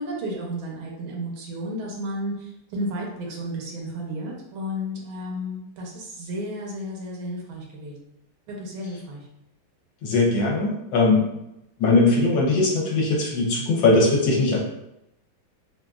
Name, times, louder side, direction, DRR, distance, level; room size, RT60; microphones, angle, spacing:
voice 1, 0.0-8.1 8.5-9.3, equal, 80° right, -2 dB, 1.6 m, -33 dB
voice 2, 10.0-11.3 11.8-14.6, left 3 dB, 70° left, -2 dB, 1.3 m, -20 dB
3.8 x 2.5 x 2.3 m, 0.85 s
omnidirectional pair, 2.3 m